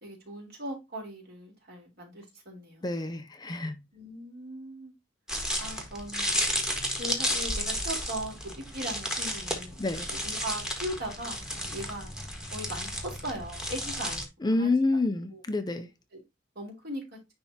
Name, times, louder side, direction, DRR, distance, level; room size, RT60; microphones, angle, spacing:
voice 1, 0.0-3.0 3.9-4.9 5.6-6.4 7.0-12.1 12.5-14.7 15.3-15.4 16.1-16.2 16.6-17.2, right 1 dB, 55° right, 3.6 m, -39 dB
voice 2, 2.8-3.8 9.8-10.1 14.4-15.9, left 2 dB, 20° left, 0.6 m, -28 dB
sound 1, 5.3-14.3, equal, 5° right, 1.4 m, -32 dB
10.0 x 3.4 x 2.8 m
head